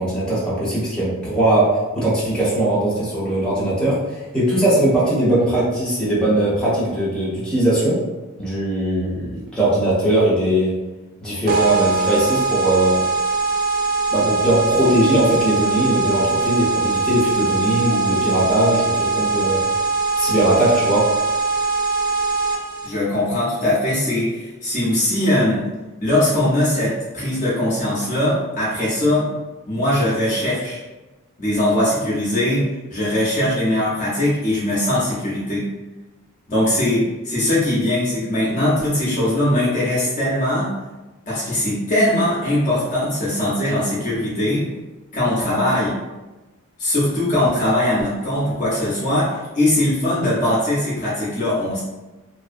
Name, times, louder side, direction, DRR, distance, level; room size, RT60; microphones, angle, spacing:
voice 1, 0.0-8.0 8.4-10.8 11.2-13.1 14.1-19.6 20.2-21.1, right 1 dB, 5° left, -9 dB, 0.8 m, -20 dB
sound 1, 11.5-22.9, right 4 dB, 40° right, 0.3 m, -21 dB
voice 2, 22.8-25.6 26.0-29.3 29.7-30.8 31.4-35.6 36.5-40.7 41.3-44.7 45.1-46.0 46.8-51.8, left 1 dB, 35° left, -7 dB, 0.6 m, -20 dB
2.5 x 2.1 x 2.4 m, 1.1 s
head